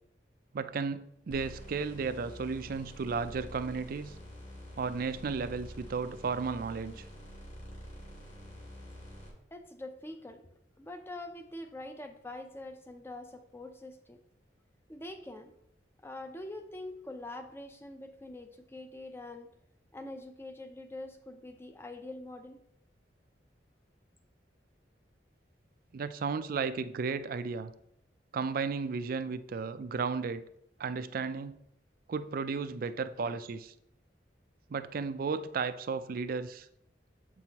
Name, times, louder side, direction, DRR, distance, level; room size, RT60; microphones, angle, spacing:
voice 1, 0.5-4.1 4.8-7.1 25.9-27.7 28.3-30.4 30.8-31.6 32.1-33.7 34.7-36.7, right 5 dB, 55° right, 12 dB, 0.4 m, -34 dB
sound 1, 1.3-9.3, equal, 45° left, 2.3 m, -47 dB
voice 2, 9.5-10.4 10.8-14.2 14.9-15.5 16.0-19.5 19.9-22.6, left 2 dB, 15° left, 7 dB, 0.5 m, -44 dB
7.7 x 6.1 x 2.9 m, 0.74 s
head